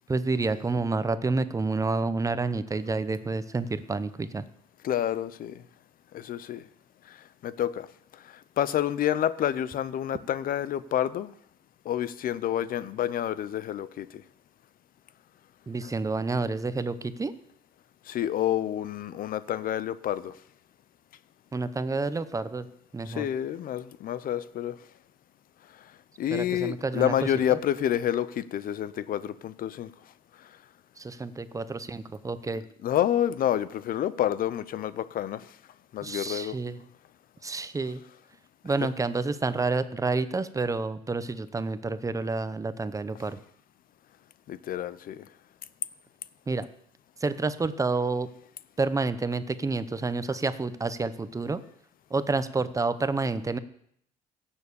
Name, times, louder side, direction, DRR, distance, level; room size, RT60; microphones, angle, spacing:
voice 1, 0.1-4.4 15.7-17.3 21.5-22.7 22.9-23.3 26.3-27.6 31.0-32.6 36.0-36.8 37.4-38.0 38.6-43.4 46.5-46.7 47.2-48.3 48.8-51.6 52.1-53.6, right 3 dB, 20° right, 13 dB, 0.8 m, -29 dB
voice 2, 4.8-5.6 6.1-6.6 7.1-7.2 7.4-7.9 8.6-11.3 11.9-14.2 15.8-15.9 18.1-20.3 23.1-24.8 26.2-29.9 32.8-35.5 35.9-36.5 44.5-45.2, left 11 dB, 55° left, 16 dB, 0.7 m, -28 dB
16.5 x 7.2 x 7.0 m, 0.69 s
cardioid pair, 110°, 17 cm